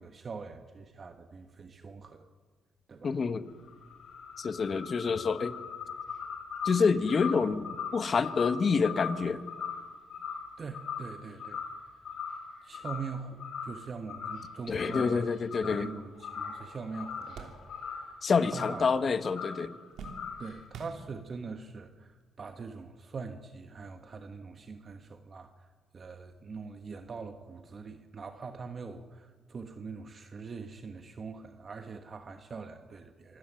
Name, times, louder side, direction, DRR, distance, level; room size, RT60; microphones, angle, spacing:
voice 1, 0.0-2.3 2.9-3.1 10.6-11.6 12.6-15.3 15.6-17.6 17.9-18.9 20.4-33.4, right 4 dB, 40° right, 7 dB, 1.3 m, -43 dB
voice 2, 3.0-3.4 4.4-5.5 6.6-9.4 14.7-15.9 18.2-19.7, left 5 dB, 45° left, 12 dB, 1.2 m, -27 dB
sound 1, 3.5-11.1 11.4-11.8 12.1-13.1 13.4-13.8 14.1-14.5 14.8-15.9 16.2-18.1 18.4-18.8 19.2-19.6 20.0-20.5, left 6 dB, 65° left, 6.2 m, -39 dB
sound 2, 14.4-18.2 18.4-19.2 19.5-21.5 22.3-22.4 23.7-23.8, right 4 dB, 70° right, 3.1 m, -50 dB
26.0 x 13.0 x 9.0 m, 1.5 s
cardioid pair, 90°, 0 cm